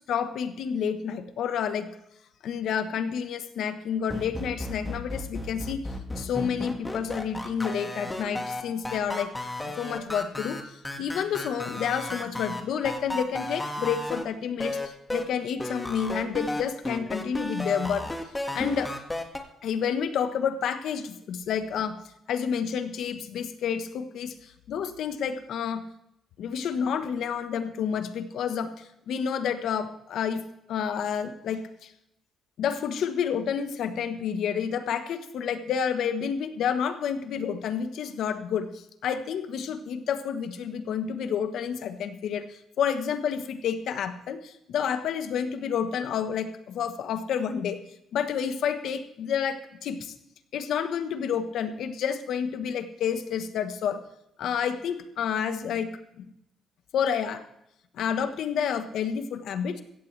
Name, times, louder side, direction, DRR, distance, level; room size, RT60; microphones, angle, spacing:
voice 1, 0.1-1.9 2.4-5.8 6.2-9.3 9.8-18.1 18.5-18.9 19.6-22.0 22.3-25.8 26.4-30.4 30.7-31.9 32.6-47.8 48.1-50.1 50.5-54.0 54.4-55.9 56.2-56.3 56.9-57.4 57.9-59.8, left 7 dB, 75° left, 9 dB, 1.3 m, -29 dB
sound 1, 4.1-14.2 14.6-15.2 15.6-19.4, left 1 dB, 15° left, 1.9 m, -33 dB
16.5 x 14.0 x 3.4 m, 0.80 s
cardioid pair, 90°, 0 cm